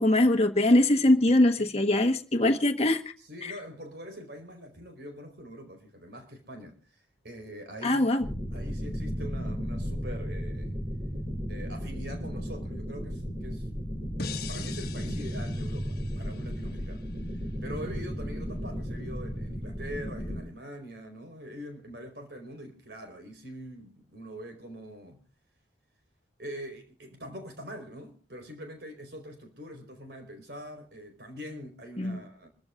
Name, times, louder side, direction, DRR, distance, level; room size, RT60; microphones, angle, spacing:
voice 1, 0.0-3.0 3.4-3.5 7.8-8.2 32.0-32.2, left 1 dB, 35° left, 1.3 m, -22 dB
voice 2, 1.3-1.7 3.2-8.1 8.5-10.7 11.5-13.7 14.3-25.2 26.4-32.5, equal, 60° right, 4.6 m, -43 dB
sound 1, 8.2-20.4, equal, 35° right, 2.7 m, -34 dB
sound 2, 14.2-17.3, left 4 dB, 55° left, 1.3 m, -42 dB
27.0 x 14.0 x 2.5 m
head